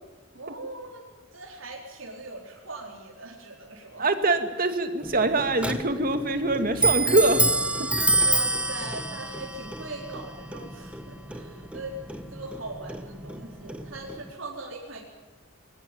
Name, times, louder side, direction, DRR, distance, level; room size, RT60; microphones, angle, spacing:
voice 1, 0.3-4.0 8.2-15.0, right 2 dB, 70° right, -2 dB, 4.4 m, -40 dB
voice 2, 4.0-7.5 7.8-7.9, right 2 dB, 45° right, 8 dB, 2.2 m, -24 dB
Clock, 5.0-14.3, right 2 dB, 5° right, 1.4 m, -28 dB
21.0 x 19.5 x 9.3 m, 1.2 s
head